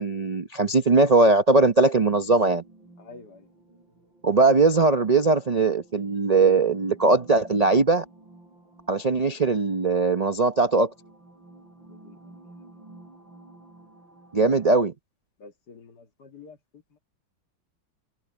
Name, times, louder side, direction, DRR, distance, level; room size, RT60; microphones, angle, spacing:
voice 1, 0.0-2.6 4.2-8.0 8.9-10.9 14.3-14.9, right 3 dB, 50° right, 0.4 m, -20 dB
sound 1, 1.9-14.7, right 2 dB, 80° right, 8.6 m, -52 dB
voice 2, 3.0-3.5 9.2-9.3 11.9-12.4 15.4-16.8, left 4 dB, 60° left, 2.3 m, -49 dB
omnidirectional pair, 2.1 m